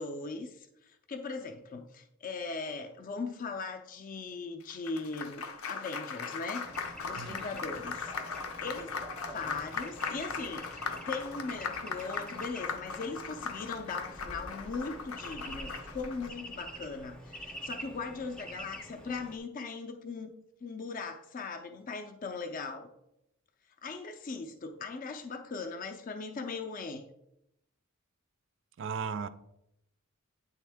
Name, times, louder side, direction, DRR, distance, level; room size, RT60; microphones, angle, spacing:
voice 1, 0.0-8.9 9.3-20.3 20.6-22.9 23.8-27.0, left 4 dB, 40° left, 0.4 m, -39 dB
Applause, 4.6-16.3, left 5 dB, 80° left, 0.6 m, -39 dB
Bird / Traffic noise roadway noise, 6.6-19.4, equal, 5° left, 0.7 m, -47 dB
voice 2, 28.8-29.3, right 6 dB, 60° right, 0.4 m, -35 dB
9.2 x 3.5 x 3.4 m
head